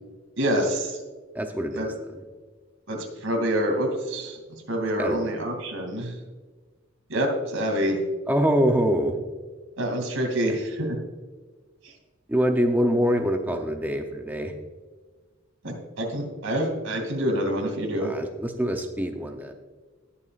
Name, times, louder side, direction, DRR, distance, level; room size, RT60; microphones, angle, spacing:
voice 1, 0.4-1.0 1.7-1.9 2.9-4.4 4.7-6.2 7.1-8.0 9.8-11.0 11.8-11.9 15.6-18.1, equal, 90° right, 3 dB, 2.7 m, -27 dB
voice 2, 1.3-1.9 5.0-5.2 8.3-9.2 12.3-14.5 18.0-19.5, equal, 10° right, 4 dB, 0.7 m, -24 dB
19.5 x 7.1 x 2.5 m, 1.4 s
head